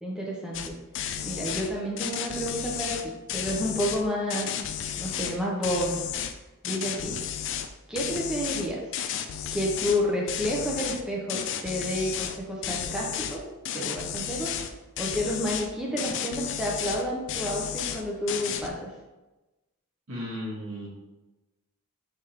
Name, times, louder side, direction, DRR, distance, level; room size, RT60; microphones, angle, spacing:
voice 1, 0.0-0.8 1.2-4.5 5.0-5.9 6.6-7.2 7.9-8.8 9.5-13.4 13.7-14.5 15.0-18.9, equal, 5° right, -3 dB, 0.6 m, -30 dB
sound 1, 0.5-0.7 0.9-1.7 2.0-4.0 4.3-5.4 5.6-6.3 6.6-7.7 8.0-10.0 10.3-11.0 11.3-12.4 12.6-13.4 13.7-14.7 15.0-15.7 16.0-17.0 17.3-18.0 18.3-18.7, left 9 dB, 60° left, 0.3 m, -33 dB
voice 2, 20.1-20.9, equal, 75° right, -6 dB, 1.3 m, -35 dB
4.9 x 3.5 x 2.8 m, 1.1 s
head